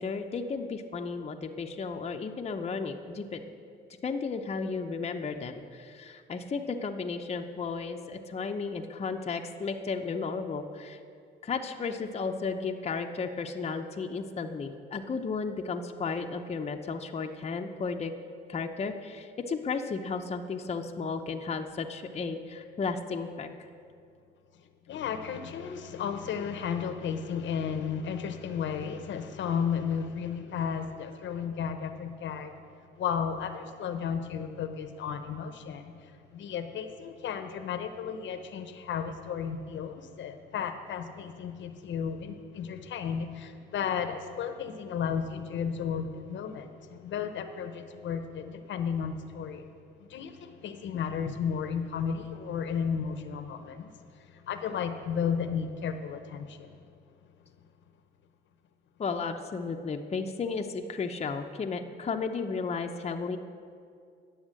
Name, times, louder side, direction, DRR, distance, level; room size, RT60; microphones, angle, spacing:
voice 1, 0.0-3.4 4.0-11.0 11.4-18.1 18.5-23.5 59.0-63.4, left 4 dB, 35° left, 4 dB, 0.7 m, -34 dB
voice 2, 24.5-32.5 33.0-49.7 50.0-56.8, left 7 dB, 70° left, 8 dB, 0.8 m, -34 dB
9.8 x 7.1 x 7.5 m, 2.3 s
cardioid pair, 90°, 20 cm